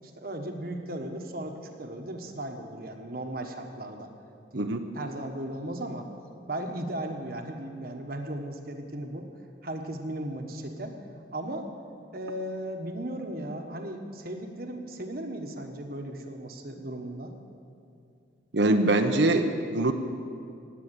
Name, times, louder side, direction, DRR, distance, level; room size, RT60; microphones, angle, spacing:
voice 1, 0.0-4.1 4.5-6.1 6.5-9.3 9.6-10.9 11.3-11.7 12.1-17.3, right 1 dB, 50° right, 3 dB, 1.3 m, -36 dB
voice 2, 18.5-19.9, right 2 dB, 70° right, 5 dB, 0.9 m, -23 dB
19.0 x 8.2 x 8.2 m, 2.4 s
head